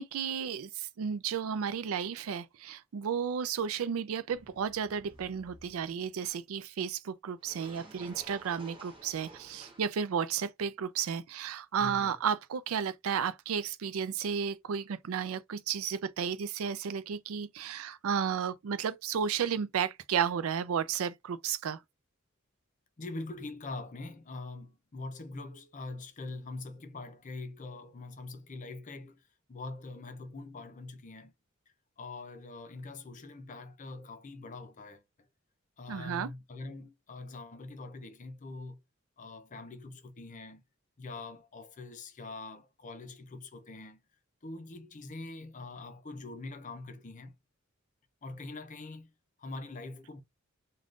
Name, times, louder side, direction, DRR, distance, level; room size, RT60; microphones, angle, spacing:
voice 1, 0.0-21.8 35.9-36.3, right 7 dB, 80° right, 0.4 m, -33 dB
sound 1, 4.3-6.0 7.4-9.8, right 2 dB, 25° right, 0.9 m, -53 dB
voice 2, 11.8-12.1 23.0-29.2 29.5-31.3 32.0-35.0 35.8-38.8 39.2-40.6 41.0-44.0 44.4-47.3 48.2-49.1 49.4-50.2, left 3 dB, 35° left, 0.6 m, -43 dB
3.5 x 2.3 x 2.5 m
head